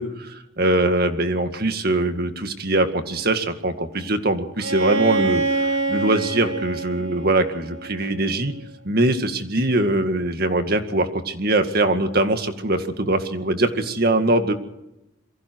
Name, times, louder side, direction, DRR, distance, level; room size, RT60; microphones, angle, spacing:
voice 1, 0.0-8.5 8.8-14.6, right 2 dB, 50° right, 7 dB, 2.0 m, -22 dB
Bowed string instrument, 4.6-8.3, right 3 dB, 85° right, 4.8 m, -26 dB
27.5 x 23.0 x 4.7 m, 0.89 s
head